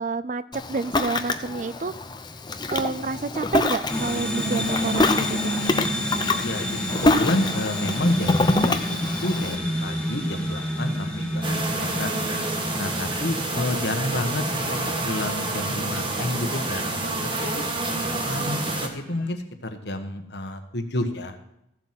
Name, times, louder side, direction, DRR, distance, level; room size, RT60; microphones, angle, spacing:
voice 1, 0.0-1.9 2.7-5.5, right 4 dB, 40° right, 15 dB, 0.4 m, -29 dB
Ocean, 0.5-9.6, left 2 dB, 25° left, 0.7 m, -26 dB
sound 1, 3.9-19.3, equal, 5° left, 1.9 m, -30 dB
voice 2, 6.4-12.1 12.8-14.8 15.0-17.6 18.2-21.4, left 1 dB, 60° left, 6 dB, 1.4 m, -30 dB
sound 2, 11.4-18.9, right 2 dB, 25° right, 1.4 m, -28 dB
15.0 x 7.7 x 5.9 m, 0.80 s
head